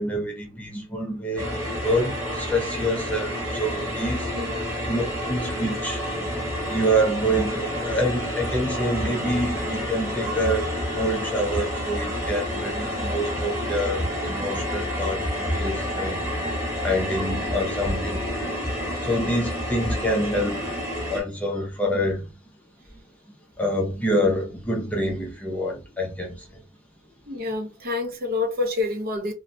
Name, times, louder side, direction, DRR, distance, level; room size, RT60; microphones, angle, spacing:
voice 1, 0.0-1.5 1.8-4.3 4.8-6.3 6.7-16.2 16.8-20.8 21.1-22.2 23.6-26.3, equal, 5° left, 0.5 m, -27 dB
sound 1, 1.4-21.2, equal, 15° right, 1.0 m, -29 dB
voice 2, 4.3-4.7 27.3-29.3, left 3 dB, 45° right, 0.6 m, -28 dB
3.1 x 2.1 x 2.6 m
head